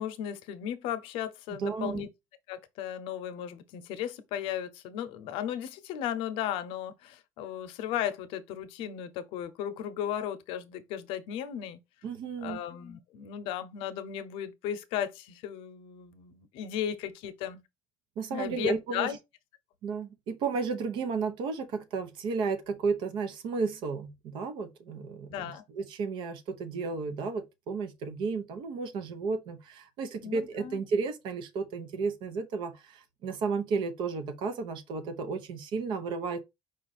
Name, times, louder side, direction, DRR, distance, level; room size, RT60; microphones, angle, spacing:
voice 1, 0.0-2.1 2.5-11.8 12.4-17.6 18.3-19.2 25.3-25.6 30.2-30.8, left 10 dB, 75° left, 0.7 m, -35 dB
voice 2, 1.5-2.0 12.0-12.6 18.2-19.1 19.8-36.4, right 4 dB, 60° right, 0.8 m, -33 dB
5.0 x 2.5 x 4.1 m
cardioid pair, 155°, 9 cm